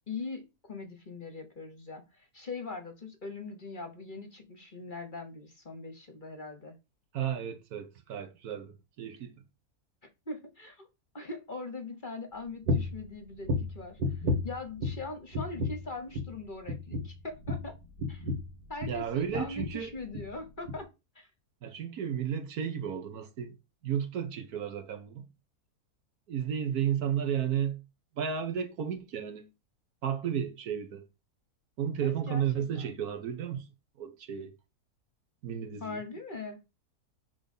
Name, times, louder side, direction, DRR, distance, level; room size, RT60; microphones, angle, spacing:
voice 1, 0.1-6.8 10.0-10.9 11.1-17.8 18.1-18.2 18.7-21.3 32.0-33.0 35.8-36.6, left 3 dB, 35° left, 1.0 m, -41 dB
voice 2, 7.1-9.4 18.9-19.9 21.6-23.6 23.8-25.3 26.3-27.8 28.2-29.5 30.0-31.1 31.8-33.7 34.0-34.5 35.4-36.0, right 8 dB, 70° right, 1.4 m, -33 dB
sound 1, 12.7-13.0 13.4-15.1 15.3-15.9 16.1-16.4 16.7-19.0 19.3-19.8 20.1-20.3 20.7-20.8, left 2 dB, 90° right, 2.3 m, -32 dB
6.1 x 3.9 x 5.3 m
omnidirectional pair, 1.7 m